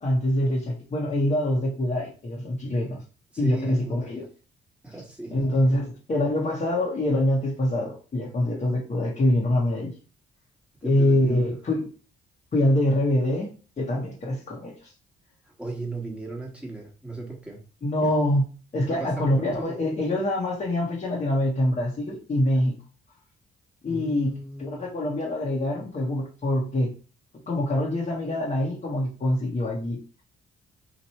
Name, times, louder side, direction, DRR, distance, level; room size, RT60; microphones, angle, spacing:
voice 1, 0.0-3.0 3.4-4.2 5.3-10.0 10.8-11.8 12.5-13.5 13.8-14.9 17.8-18.4 18.7-22.7 23.8-24.3 24.6-26.9 27.5-30.0, left 1 dB, 35° left, 1.1 m, -25 dB
voice 2, 3.3-4.1 4.8-5.7 10.8-11.4 15.4-17.6 18.0-18.1 18.9-19.8 23.9-24.9, right 2 dB, 5° right, 1.4 m, -37 dB
2.9 x 2.6 x 4.2 m
cardioid pair, 90°, 20 cm